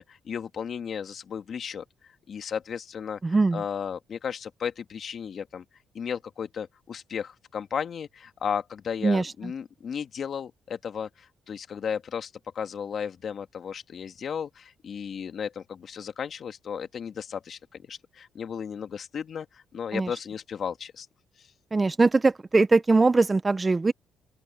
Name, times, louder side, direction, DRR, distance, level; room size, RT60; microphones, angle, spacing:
voice 1, 0.0-1.8 2.3-3.2 3.5-5.6 5.9-17.6 17.9-21.1 21.4-21.5, left 7 dB, 55° left, 1.9 m, -34 dB
voice 2, 3.2-3.6 9.0-9.5 19.9-20.1 21.7-23.9, right 3 dB, 25° right, 1.0 m, -22 dB
open air
cardioid pair, 90°, 0 cm